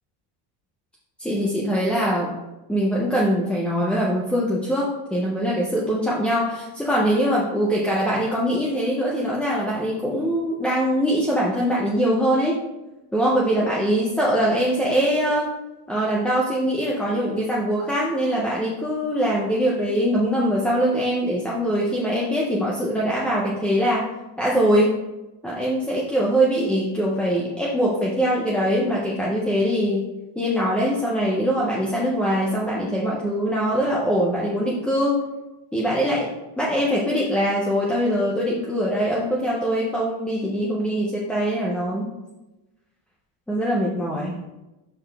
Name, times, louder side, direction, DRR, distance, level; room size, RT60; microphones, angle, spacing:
voice 1, 1.2-2.3 2.7-12.6 13.1-15.5 15.9-24.1 24.4-24.9 25.4-30.1 30.4-35.2 35.7-36.3 36.6-42.1 43.5-44.4, equal, 5° left, -5 dB, 0.3 m, -22 dB
6.6 x 5.8 x 3.3 m, 1.0 s
cardioid pair, 175°, 48 cm